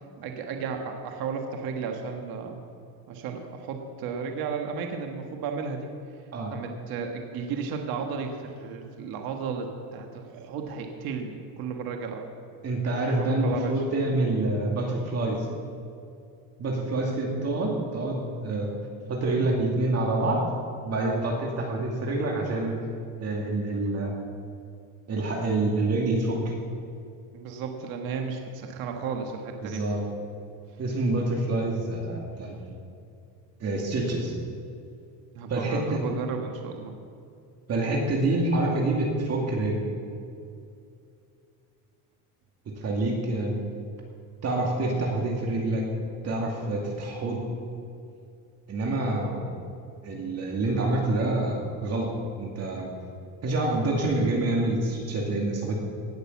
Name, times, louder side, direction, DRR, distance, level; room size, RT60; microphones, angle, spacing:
voice 1, 0.2-2.6 3.1-5.9 6.5-12.3 13.2-13.8 27.3-29.8 32.5-32.6 35.3-37.0, right 5 dB, 65° right, 3 dB, 1.6 m, -34 dB
voice 2, 12.6-15.5 16.6-18.7 19.1-20.4 20.8-22.7 23.2-24.1 25.1-26.5 29.6-30.0 30.8-32.6 33.6-34.3 35.5-36.0 37.7-39.8 42.8-43.6 44.4-45.8 46.2-47.4 48.7-49.5 50.0-52.1 52.4-52.9 53.4-55.8, right 2 dB, 40° right, -1 dB, 2.3 m, -27 dB
18.5 x 6.7 x 7.2 m, 2.5 s
cardioid pair, 125°, 38 cm